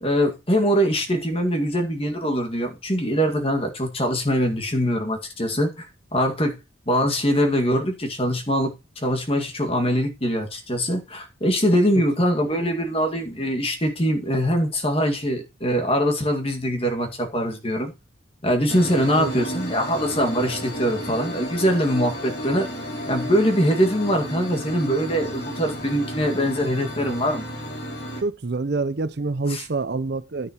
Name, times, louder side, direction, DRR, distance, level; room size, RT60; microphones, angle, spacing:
voice 1, 0.0-5.9 6.1-6.6 6.9-8.7 9.0-17.9 18.4-22.7 23.1-27.5 29.5-29.6, equal, 30° left, 1.9 m, -23 dB
sound 1, 18.7-28.2, equal, 55° left, 2.9 m, -32 dB
voice 2, 28.2-30.5, right 3 dB, 55° right, 0.6 m, -26 dB
10.5 x 10.0 x 3.0 m
head